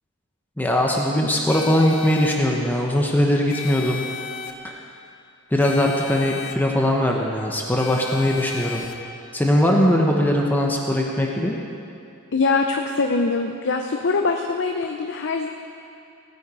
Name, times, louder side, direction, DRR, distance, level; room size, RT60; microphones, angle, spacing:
voice 1, 0.6-4.0 4.6-4.7 5.5-8.8 9.3-11.5, left 1 dB, 10° left, -1 dB, 0.9 m, -20 dB
sound 1, 1.5-2.4 3.5-4.5 5.6-6.5 7.8-8.9, left 8 dB, 75° left, 1.0 m, -34 dB
voice 2, 12.3-15.5, left 3 dB, 55° left, 3 dB, 0.6 m, -23 dB
17.5 x 9.1 x 4.9 m, 2.6 s
head